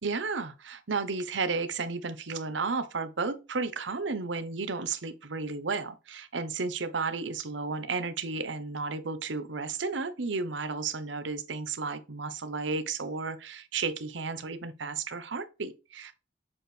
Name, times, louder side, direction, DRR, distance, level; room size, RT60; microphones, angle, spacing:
voice 1, 0.0-16.2, right 4 dB, 85° right, 0.8 m, -33 dB
7.2 x 4.5 x 3.3 m
head